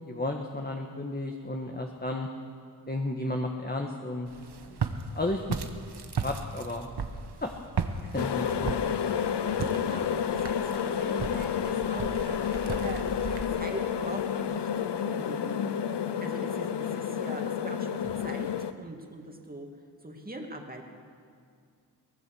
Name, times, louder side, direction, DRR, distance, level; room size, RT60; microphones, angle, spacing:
voice 1, 0.0-2.3 2.9-4.3 4.6-5.6 6.2-6.9 7.4-7.5 8.0-8.8, left 2 dB, 25° left, 2 dB, 1.6 m, -33 dB
Walk footsteps, 4.3-13.5, right 5 dB, 70° right, 1.4 m, -36 dB
sound 1, 8.2-18.7, left 8 dB, 75° left, 0.8 m, -30 dB
voice 2, 9.8-10.2 10.7-12.1 12.4-13.0 13.5-15.6 16.2-19.7 20.0-20.9, right 2 dB, 20° right, 2 dB, 2.6 m, -42 dB
23.5 x 19.0 x 6.4 m, 2.2 s
wide cardioid pair, 95°, 41 cm